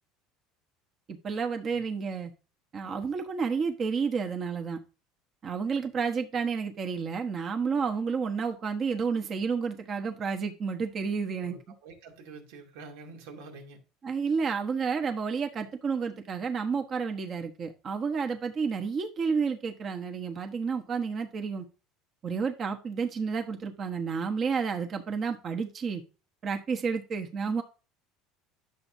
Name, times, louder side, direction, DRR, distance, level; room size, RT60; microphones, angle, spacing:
voice 1, 1.1-2.3 2.7-4.8 5.4-11.6 14.0-21.6 22.2-26.0 26.4-27.6, right 5 dB, 30° right, 1.1 m, -30 dB
voice 2, 11.3-13.8, right 3 dB, 90° right, 2.5 m, -47 dB
11.0 x 7.2 x 2.7 m
cardioid pair, 145°, 0 cm